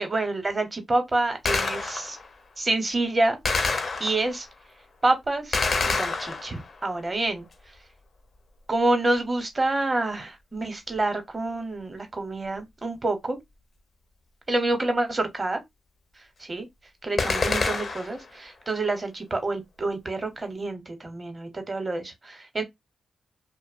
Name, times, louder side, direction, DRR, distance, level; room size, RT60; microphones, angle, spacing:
voice 1, 0.0-2.2 2.6-3.4 4.0-4.5 5.0-5.6 5.9-7.4 8.7-13.4 14.5-15.6 16.4-16.7 17.0-22.6, right 2 dB, 35° right, 0.8 m, -27 dB
Gunshot gunfire, 1.5-2.3 3.5-4.4 5.5-6.8 17.2-18.3, left 4 dB, 55° left, 0.5 m, -27 dB
2.5 x 2.0 x 2.4 m
cardioid pair, 65°, 0 cm